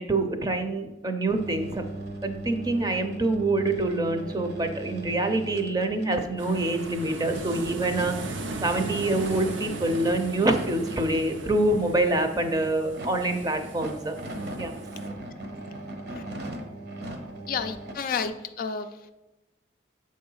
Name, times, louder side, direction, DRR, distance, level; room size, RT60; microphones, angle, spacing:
voice 1, 0.0-1.8 2.2-8.3 8.6-14.1 14.6-14.7, right 2 dB, 20° right, 6 dB, 0.6 m, -26 dB
sound 1, 1.3-17.9, right 2 dB, 60° right, 1.0 m, -40 dB
sound 2, 6.4-15.1, right 2 dB, 85° right, 0.7 m, -38 dB
voice 2, 17.5-19.1, left 6 dB, 50° left, 8 dB, 0.3 m, -31 dB
7.6 x 3.8 x 5.5 m, 1.0 s
head